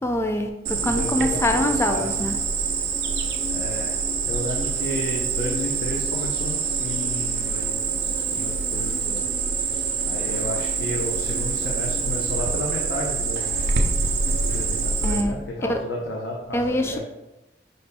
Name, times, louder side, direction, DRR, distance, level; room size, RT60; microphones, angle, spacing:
voice 1, 0.0-2.4 15.0-15.3 15.6-15.8 16.5-17.0, left 1 dB, 15° left, 5 dB, 0.3 m, -24 dB
Cricket, 0.6-15.2, right 5 dB, 70° right, 0.6 m, -25 dB
voice 2, 0.8-2.1 3.5-4.0 4.2-9.3 10.1-13.5 14.5-17.0, left 1 dB, 80° left, -2 dB, 0.7 m, -32 dB
5.2 x 4.2 x 2.2 m, 0.97 s
head